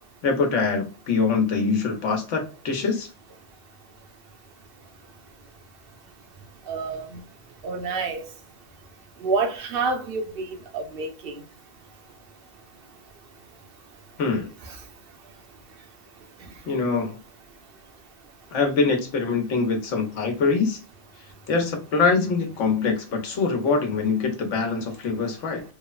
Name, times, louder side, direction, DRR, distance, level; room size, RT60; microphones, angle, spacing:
voice 1, 0.2-3.1 14.2-14.5 16.7-17.2 18.5-20.8 21.5-25.6, left 4 dB, 80° left, 1.1 m, -24 dB
voice 2, 6.7-7.2 7.6-8.3 9.2-10.4 10.7-11.4 14.7-14.8, right 4 dB, 60° right, 0.8 m, -28 dB
3.1 x 2.0 x 2.3 m
omnidirectional pair, 1.2 m